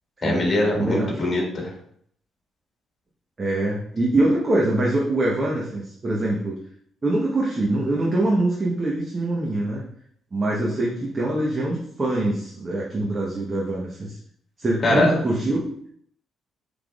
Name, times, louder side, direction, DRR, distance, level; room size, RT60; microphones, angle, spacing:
voice 1, 0.2-1.7 14.8-15.1, left 2 dB, 40° left, -1 dB, 1.7 m, -22 dB
voice 2, 0.7-1.2 3.4-6.6 7.0-9.8 10.3-14.2 14.6-15.7, right 1 dB, 30° right, -3 dB, 0.9 m, -24 dB
5.8 x 3.4 x 2.4 m, 0.65 s
cardioid pair, 90°, 0 cm